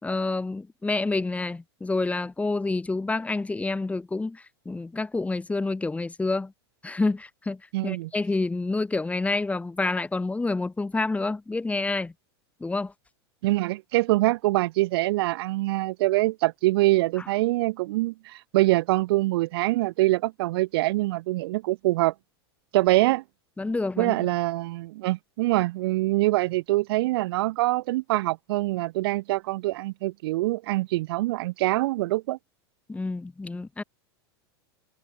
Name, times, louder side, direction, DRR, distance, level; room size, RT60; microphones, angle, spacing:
voice 1, 0.0-6.5 6.8-12.1 12.6-12.9 23.6-24.3 32.9-33.8, left 3 dB, 10° left, 4.3 m, -28 dB
voice 2, 7.7-8.1 13.4-22.1 22.7-23.2 24.0-32.4, right 19 dB, 65° right, 1.1 m, -24 dB
hypercardioid pair, 110°, 14 cm